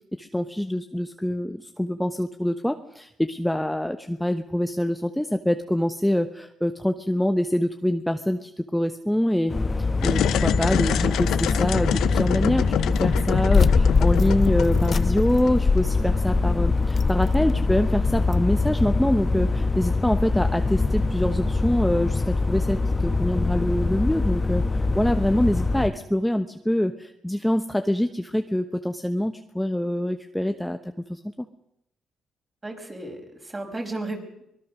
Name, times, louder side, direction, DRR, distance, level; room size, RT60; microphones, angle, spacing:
voice 1, 0.1-9.5 10.0-30.8 31.1-31.5, left 1 dB, 5° left, 7 dB, 1.1 m, -25 dB
sound 1, 9.5-25.9, left 3 dB, 25° left, 1.4 m, -24 dB
sound 2, 10.0-15.8, left 11 dB, 80° left, 0.8 m, -27 dB
sound 3, 13.5-18.3, left 5 dB, 40° left, 1.0 m, -24 dB
voice 2, 32.6-34.4, right 2 dB, 25° right, 3 dB, 5.4 m, -34 dB
24.5 x 20.0 x 6.3 m, 0.81 s
cardioid pair, 90°, 0 cm